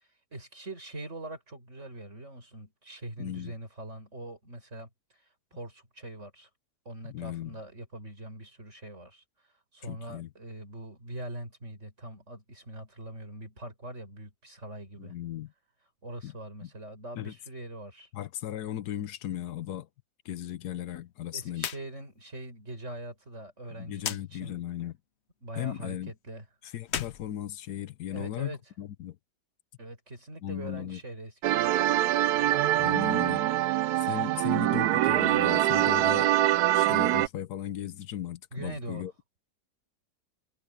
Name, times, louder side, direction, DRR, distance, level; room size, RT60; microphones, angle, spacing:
voice 1, 0.3-6.5 6.9-9.2 9.7-15.1 16.0-18.1 21.3-24.6 25.4-26.5 28.1-28.6 29.8-31.8 38.5-39.1, right 1 dB, 45° right, 7.1 m, -42 dB
voice 2, 3.2-3.5 7.0-7.6 9.8-10.3 15.0-15.5 16.2-16.3 16.6-16.7 17.1-17.3 18.1-19.9 20.2-21.7 23.7-24.9 25.6-26.1 26.6-29.2 30.4-31.0 32.8-33.4 34.0-36.3 36.7-39.1, left 12 dB, 75° left, 1.3 m, -37 dB
sound 1, 21.5-21.8 22.2-22.3 24.0-24.2 26.8-28.1, left 9 dB, 55° left, 0.8 m, -36 dB
sound 2, 31.4-37.3, right 14 dB, 80° right, 1.1 m, -24 dB
omnidirectional pair, 1.7 m